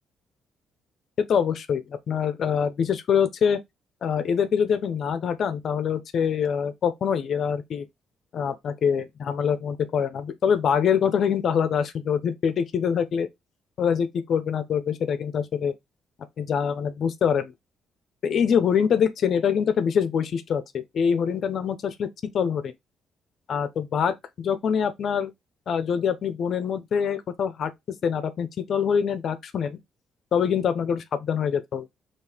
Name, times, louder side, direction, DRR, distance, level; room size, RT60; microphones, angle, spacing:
voice 1, 1.2-3.6 4.0-7.9 8.3-13.3 13.8-15.7 16.4-17.5 18.2-22.1 22.3-22.7 23.5-25.3 25.7-27.7 28.0-29.8 30.3-31.9, left 7 dB, 60° left, 0.8 m, -24 dB
4.7 x 3.2 x 3.5 m
cardioid pair, 90°, 0 cm